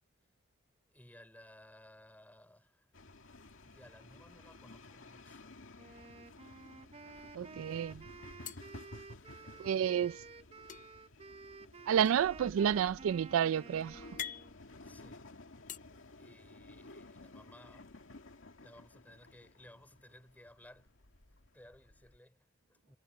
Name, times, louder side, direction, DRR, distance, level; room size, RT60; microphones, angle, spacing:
voice 1, 0.9-2.9 3.6-5.6 9.4-9.9 12.5-12.8 14.8-15.3 16.2-18.0 18.6-20.9 21.5-23.0, left 1 dB, 10° left, 3.2 m, -59 dB
sound 1, 2.9-22.2, left 2 dB, 70° left, 2.1 m, -55 dB
sound 2, 5.1-6.0 6.4-6.5 6.8-7.5 8.4-9.7 10.7-15.8, left 10 dB, 40° left, 0.5 m, -49 dB
Wind instrument woodwind instrument, 5.8-14.5, right 4 dB, 30° right, 0.6 m, -52 dB
voice 2, 7.3-8.0 9.6-10.2 11.9-14.0, right 8 dB, 80° right, 0.3 m, -30 dB
head